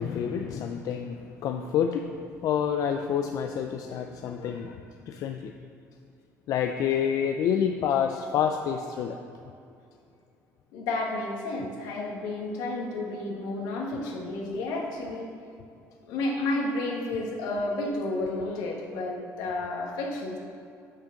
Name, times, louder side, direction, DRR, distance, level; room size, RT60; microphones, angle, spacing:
voice 1, 0.0-4.8 5.1-5.5 6.5-9.2, left 8 dB, 65° left, 4 dB, 0.4 m, -28 dB
voice 2, 10.7-15.3 16.1-20.4, left 2 dB, 85° left, 0 dB, 1.4 m, -31 dB
6.5 x 6.2 x 5.8 m, 2.5 s
cardioid pair, 95°, 6 cm